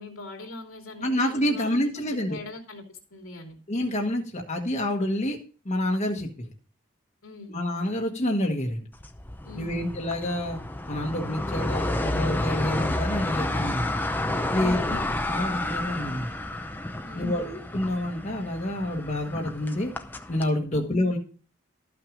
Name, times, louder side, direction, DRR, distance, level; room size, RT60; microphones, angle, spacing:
voice 1, 0.0-3.6 7.2-7.6 9.4-9.9 14.5-15.0 17.0-17.4 20.7-20.9, left 2 dB, 85° left, 2 dB, 2.8 m, -42 dB
voice 2, 1.0-2.4 3.7-5.4 5.6-6.5 7.5-8.9 9.5-10.6 10.9-13.9 14.5-15.0 15.3-16.3 17.2-19.9 20.3-21.2, left 1 dB, 35° left, 1 dB, 1.2 m, -28 dB
sound 1, 9.0-20.5, left 1 dB, 10° left, 0.6 m, -30 dB
13.0 x 6.0 x 5.0 m, 0.39 s
head